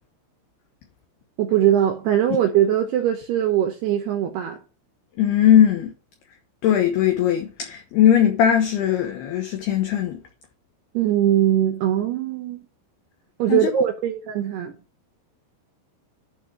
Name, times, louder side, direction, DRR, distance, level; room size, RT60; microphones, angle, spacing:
voice 1, 1.4-4.6 10.9-12.6 13.4-14.7, right 11 dB, 75° right, 2.4 m, -21 dB
voice 2, 5.2-5.9 6.6-10.2 13.5-13.7, left 10 dB, 70° left, 2.6 m, -19 dB
11.5 x 4.5 x 4.9 m
omnidirectional pair, 5.9 m